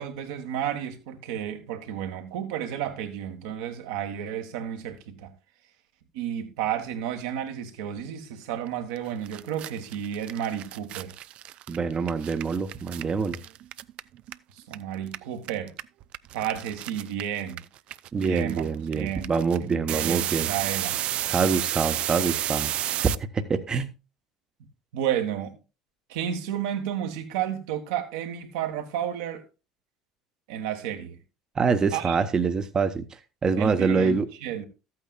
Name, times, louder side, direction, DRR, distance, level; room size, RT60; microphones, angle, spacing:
voice 1, 0.0-5.3 6.1-11.1 14.5-15.7 16.3-17.6 18.2-18.7 18.9-19.3 19.9-21.0 24.9-25.6 26.1-29.4 30.5-31.1 31.9-32.2 33.6-34.7, right 10 dB, 75° right, 1.5 m, -32 dB
sound 1, 9.0-9.1 9.2-14.7 15.0-23.1, right 13 dB, 55° right, 0.4 m, -31 dB
voice 2, 11.7-13.4 18.1-20.5 21.2-22.7 23.0-23.9 31.5-34.3, right 5 dB, 30° right, 1.0 m, -25 dB
13.5 x 8.7 x 2.4 m
hypercardioid pair, 65°, 2 cm